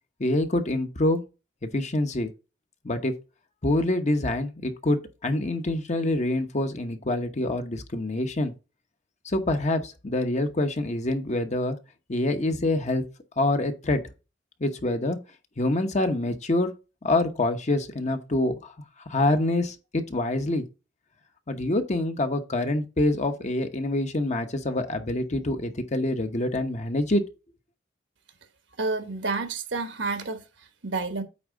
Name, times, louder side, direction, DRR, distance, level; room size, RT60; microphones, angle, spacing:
voice 1, 0.2-1.2 1.6-2.3 2.8-3.1 3.6-8.5 9.2-11.8 12.1-13.0 13.4-14.0 14.6-15.2 15.6-16.7 17.0-18.7 19.1-20.6 21.5-27.2, left 2 dB, 40° left, 1.0 m, -26 dB
voice 2, 28.8-31.2, right 3 dB, 75° right, 1.2 m, -30 dB
8.6 x 3.6 x 5.1 m
head